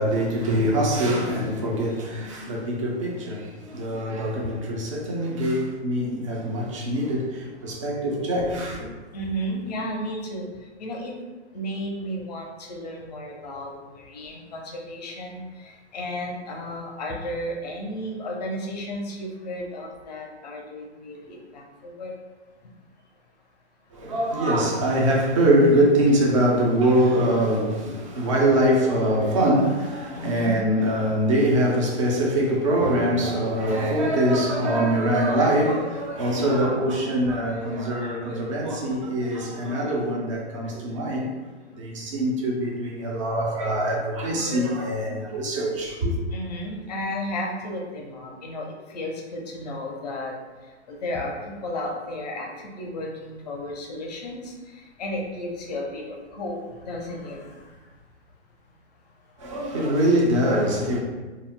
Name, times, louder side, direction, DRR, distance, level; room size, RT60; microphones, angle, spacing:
voice 1, 0.0-8.9 23.9-41.3 41.7-46.1 59.4-61.0, right 1 dB, 30° right, 0.4 m, -23 dB
voice 2, 9.1-10.4 10.8-11.1 11.5-22.1 30.1-30.7 46.3-50.3 50.9-57.7 59.5-59.6 60.4-61.0, left 1 dB, 40° left, 0.5 m, -33 dB
2.3 x 2.0 x 3.5 m
hypercardioid pair, 150°, 34 cm